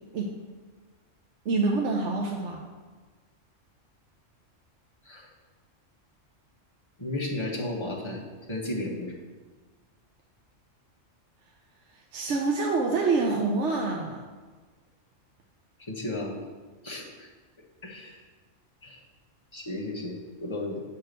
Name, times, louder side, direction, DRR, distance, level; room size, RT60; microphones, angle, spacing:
voice 1, 1.4-2.6 12.1-14.2, right 3 dB, 70° right, 0 dB, 1.0 m, -26 dB
voice 2, 7.0-8.2 8.5-9.2 15.9-16.4 16.8-17.3 17.8-18.2 18.8-19.0 19.5-20.8, left 1 dB, 25° left, -3 dB, 1.4 m, -34 dB
7.7 x 4.3 x 6.5 m, 1.4 s
omnidirectional pair, 1.3 m